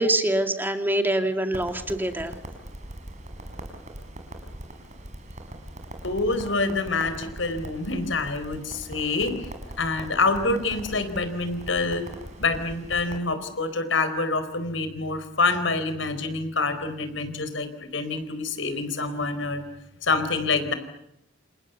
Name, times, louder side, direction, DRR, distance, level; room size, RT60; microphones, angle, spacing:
voice 1, 0.0-2.3, right 1 dB, 10° right, 6 dB, 2.3 m, -24 dB
Crackle, 1.5-13.2, right 1 dB, 40° right, 5.2 m, -41 dB
voice 2, 6.0-9.3 9.8-12.0 12.4-19.6 20.0-20.7, left 3 dB, 85° left, 10 dB, 4.5 m, -26 dB
29.0 x 29.0 x 7.1 m, 0.81 s
head